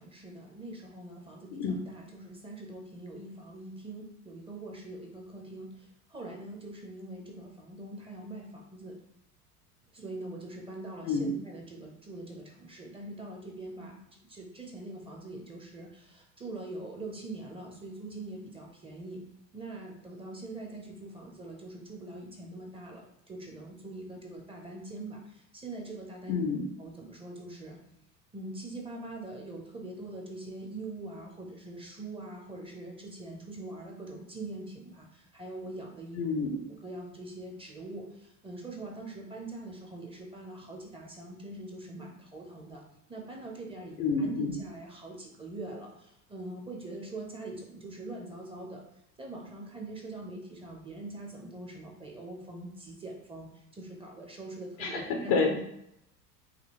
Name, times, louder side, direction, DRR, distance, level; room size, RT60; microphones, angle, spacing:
voice 1, 0.0-9.0 9.9-19.2 19.5-26.4 26.8-27.8 28.3-36.2 36.7-42.8 43.1-48.8 49.2-55.6, right 2 dB, 10° right, 0 dB, 0.7 m, -43 dB
voice 2, 11.0-11.3 26.3-26.7 36.1-36.5 44.0-44.6 54.8-55.6, left 4 dB, 30° left, 2 dB, 0.5 m, -29 dB
5.0 x 2.7 x 3.0 m, 0.78 s
figure-of-eight pair, 80°, 49 cm